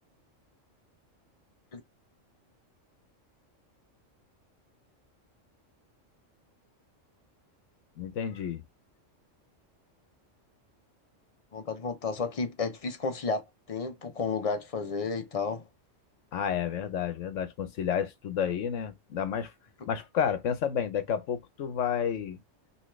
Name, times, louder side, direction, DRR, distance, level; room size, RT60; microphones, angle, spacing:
voice 1, 8.0-8.6 16.3-19.5 19.9-22.4, left 8 dB, 75° left, 1.1 m, -30 dB
voice 2, 11.5-13.4 13.7-15.6, left 4 dB, 40° left, 0.6 m, -32 dB
5.5 x 2.9 x 3.2 m
omnidirectional pair, 1.3 m